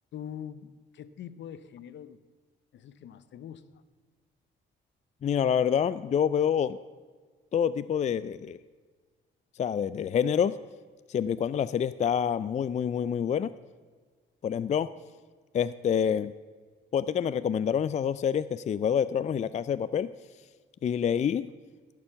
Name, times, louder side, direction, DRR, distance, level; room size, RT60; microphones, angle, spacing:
voice 1, 0.1-2.2 2.7-3.6, left 9 dB, 65° left, 14 dB, 0.8 m, -43 dB
voice 2, 5.2-6.8 7.5-8.6 9.6-10.6 11.1-13.5 14.4-14.9 15.5-16.3 16.9-20.1 20.8-21.5, left 8 dB, 35° left, 15 dB, 0.4 m, -27 dB
16.5 x 7.0 x 5.8 m, 1.5 s
cardioid pair, 90°, 20 cm